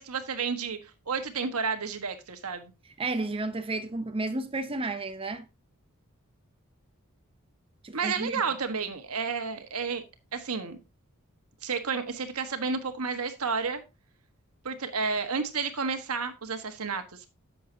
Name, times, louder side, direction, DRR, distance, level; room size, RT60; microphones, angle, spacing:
voice 1, 0.0-2.7 7.9-10.0 10.3-10.8 11.6-13.8 14.6-17.3, right 5 dB, 80° right, 1.4 m, -31 dB
voice 2, 3.0-5.4 7.8-8.4, right 2 dB, 25° right, 0.6 m, -32 dB
10.5 x 7.7 x 2.8 m
head